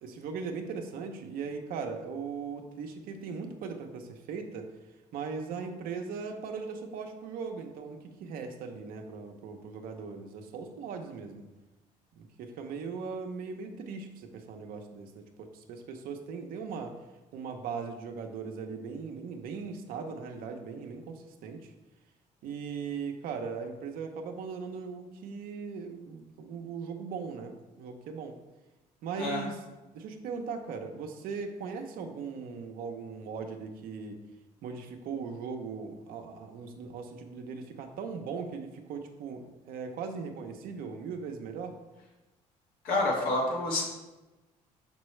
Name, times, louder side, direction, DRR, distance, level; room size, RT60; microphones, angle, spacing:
voice 1, 0.0-4.7 5.1-11.5 12.1-17.0 17.3-21.7 22.4-28.4 29.0-29.6 29.9-34.2 34.6-41.8, right 5 dB, 75° right, 4 dB, 0.8 m, -39 dB
voice 2, 42.8-43.8, left 2 dB, 75° left, -2 dB, 1.7 m, -28 dB
6.1 x 5.4 x 3.2 m, 1.1 s
supercardioid pair, 80°, 15 cm